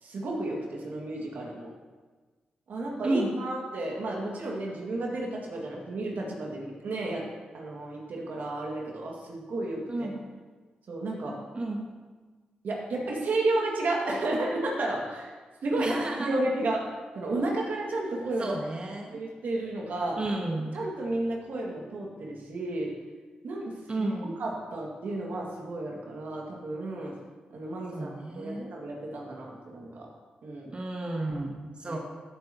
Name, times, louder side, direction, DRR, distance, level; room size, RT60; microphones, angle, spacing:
voice 1, 0.0-1.7 2.7-7.2 7.5-10.1 10.9-11.3 12.6-15.3 15.6-16.8 17.1-18.6 19.1-20.2 20.7-22.9 23.4-24.1 24.4-27.1 27.5-30.1 30.4-30.7 31.8-32.0, right 2 dB, 75° right, -2 dB, 2.1 m, -32 dB
voice 2, 3.0-3.4 9.9-10.2 11.5-11.9 15.8-16.4 18.4-19.2 20.2-20.7 23.9-24.4 27.9-28.7 30.7-32.0, right 2 dB, 35° right, 0 dB, 1.3 m, -32 dB
15.0 x 7.8 x 3.0 m, 1.4 s
cardioid pair, 60°, 3 cm